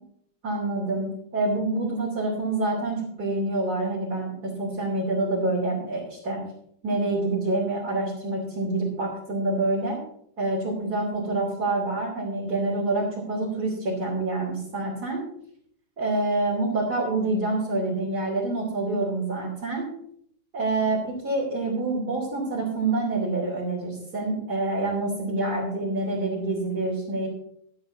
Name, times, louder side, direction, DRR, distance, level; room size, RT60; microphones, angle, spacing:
voice 1, 0.4-1.1 1.3-4.3 4.6-6.4 6.8-10.0 10.4-15.2 16.0-19.9 20.5-27.3, right 2 dB, 45° right, -6 dB, 3.6 m, -27 dB
18.0 x 11.5 x 2.7 m, 0.68 s
omnidirectional pair, 2.3 m